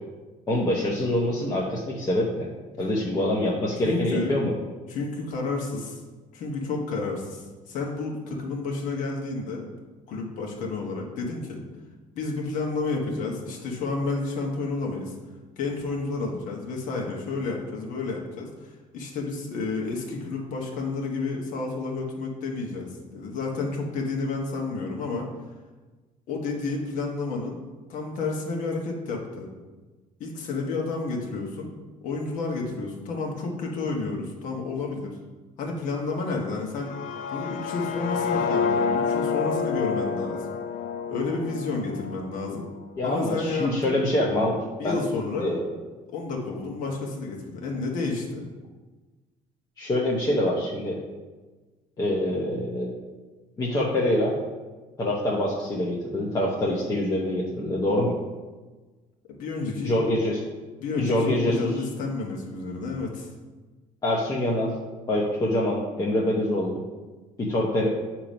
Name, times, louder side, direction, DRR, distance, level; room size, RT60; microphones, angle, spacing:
voice 1, 0.5-2.5 2.8-4.5 43.0-44.6 44.8-45.0 45.4-45.6 49.8-51.0 52.0-52.9 53.6-54.3 55.0-58.1 59.8-60.4 61.0-61.6 64.0-64.7 65.1-66.8 67.4-67.9, left 1 dB, 25° left, -4 dB, 0.9 m, -25 dB
voice 2, 3.8-4.3 4.9-6.0 6.3-9.7 10.1-11.6 12.1-15.1 15.6-25.3 26.3-27.6 27.9-29.5 30.2-31.7 32.0-35.1 35.6-36.9 37.3-40.5 41.1-42.7 43.0-43.9 44.8-45.5 46.1-48.4 59.3-60.0 60.8-63.3, left 3 dB, 70° left, 0 dB, 1.2 m, -30 dB
sound 1, 36.7-42.7, left 5 dB, 85° left, 0.5 m, -28 dB
8.5 x 3.0 x 5.1 m, 1.3 s
cardioid pair, 150°, 14 cm